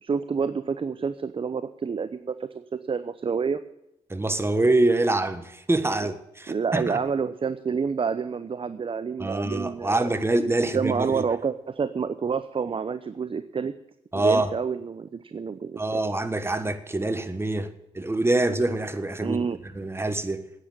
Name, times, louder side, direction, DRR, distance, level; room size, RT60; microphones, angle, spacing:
voice 1, 0.0-3.6 6.0-6.1 6.5-10.1 10.7-13.7 14.1-15.8 19.2-19.6, right 5 dB, 35° right, 0.7 m, -28 dB
voice 2, 4.1-7.0 9.2-11.2 14.1-14.5 15.8-19.4 19.7-20.5, right 2 dB, 15° right, 1.5 m, -25 dB
10.0 x 8.9 x 8.8 m
hypercardioid pair, 50°, 16 cm